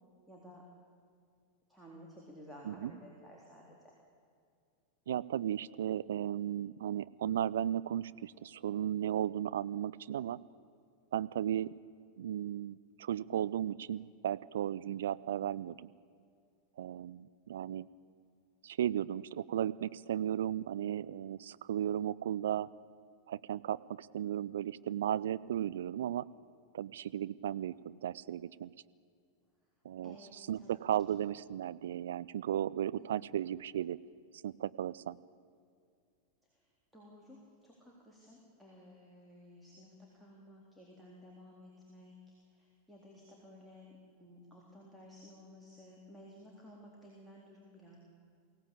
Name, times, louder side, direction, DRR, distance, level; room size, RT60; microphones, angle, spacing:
voice 1, 0.3-0.7 1.7-3.9 30.0-30.9 33.0-33.4 36.5-36.7 36.9-42.2 42.5-48.0, equal, ahead, -4 dB, 3.7 m, -55 dB
voice 2, 5.1-10.4 11.1-11.7 12.2-15.9 16.8-17.9 18.6-22.7 23.3-26.3 26.7-28.7 29.8-30.2 30.5-34.0 34.4-35.2, right 10 dB, 60° right, 17 dB, 0.5 m, -35 dB
22.5 x 17.0 x 8.5 m, 2.3 s
figure-of-eight pair, 90°, 0 cm